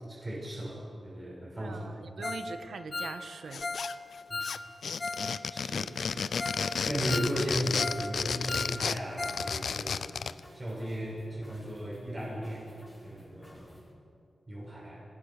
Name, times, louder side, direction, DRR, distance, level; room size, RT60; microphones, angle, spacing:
voice 1, 0.1-1.9 2.2-2.3 4.3-4.4 5.4-10.0 10.5-12.7 13.0-13.7 14.5-15.0, equal, 25° right, -4 dB, 7.0 m, -36 dB
voice 2, 1.6-3.7, right 4 dB, 90° right, 9 dB, 1.3 m, -42 dB
Ringtone, 2.2-2.5 2.8-5.3 5.6-5.7 6.1-6.2 6.4-6.7 6.9-8.1 8.3-9.5 9.7-9.8 10.3-10.4, left 3 dB, 35° left, 2.0 m, -37 dB
sound 1, 3.5-4.2 4.4-10.4, left 6 dB, 90° left, 0.6 m, -32 dB
sound 2, 5.9-13.9, equal, 15° left, 7.8 m, -54 dB
27.0 x 19.5 x 6.6 m, 2.6 s
wide cardioid pair, 110°, 0 cm